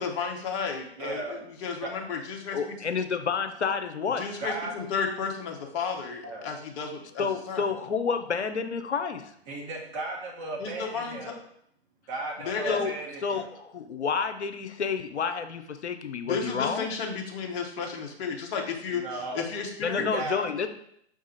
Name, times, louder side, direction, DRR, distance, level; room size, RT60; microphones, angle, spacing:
voice 1, 0.0-2.8 4.2-7.6 10.6-11.3 12.4-12.8 16.2-19.0 19.3-20.0, left 5 dB, 25° left, 1 dB, 0.7 m, -33 dB
voice 2, 1.0-1.4 1.8-1.9 4.4-4.7 6.2-6.5 9.5-11.3 12.1-13.5 18.9-19.4 20.0-20.4, right 2 dB, 15° right, -1 dB, 0.4 m, -35 dB
voice 3, 2.5-4.2 7.2-9.2 12.7-12.9 13.2-16.9 19.8-20.7, left 5 dB, 85° left, 8 dB, 0.5 m, -29 dB
5.2 x 2.4 x 4.0 m, 0.71 s
figure-of-eight pair, 115°, 33 cm